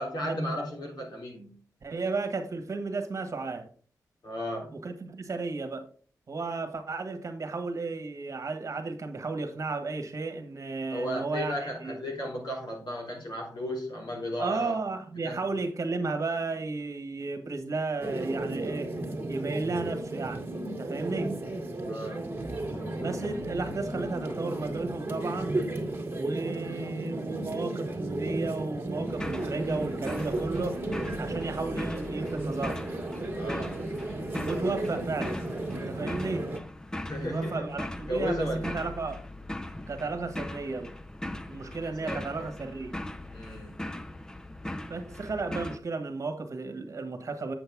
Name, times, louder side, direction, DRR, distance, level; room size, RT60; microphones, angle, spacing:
voice 1, 0.0-1.5 4.2-4.8 10.9-14.7 15.2-15.4 21.8-22.3 33.4-33.8 36.9-37.7 38.1-38.9 41.8-42.5 43.3-43.7, equal, 90° left, 3.4 m, -34 dB
voice 2, 1.8-3.7 4.7-5.9 6.3-12.0 14.4-18.9 19.3-21.4 23.0-25.6 26.2-30.8 31.2-32.8 34.4-35.4 35.7-36.5 37.2-39.2 39.9-40.9 41.5-43.0 44.9-47.5, right 3 dB, 50° right, 1.5 m, -33 dB
sound 1, 18.0-36.6, right 2 dB, 30° right, 1.8 m, -34 dB
sound 2, 22.1-22.2 22.4-26.2, left 1 dB, 35° left, 1.1 m, -45 dB
sound 3, 29.1-45.8, left 1 dB, 10° left, 0.5 m, -39 dB
7.9 x 7.8 x 3.5 m
wide cardioid pair, 135°, 7 cm